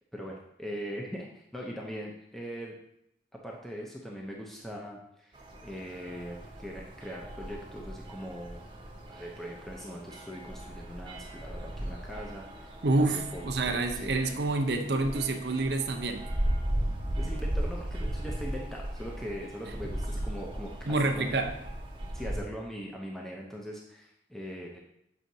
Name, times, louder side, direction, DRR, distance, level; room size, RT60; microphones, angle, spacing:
voice 1, 0.1-2.8 3.4-5.3 5.6-8.6 9.1-14.1 17.2-20.7 21.0-21.4 22.1-24.8, equal, ahead, -2 dB, 0.6 m, -41 dB
sound 1, 5.3-22.4, right 1 dB, 25° right, 0.8 m, -37 dB
voice 2, 12.8-16.3 20.9-21.5, right 2 dB, 60° right, 5 dB, 0.7 m, -28 dB
7.6 x 5.6 x 2.7 m, 0.77 s
head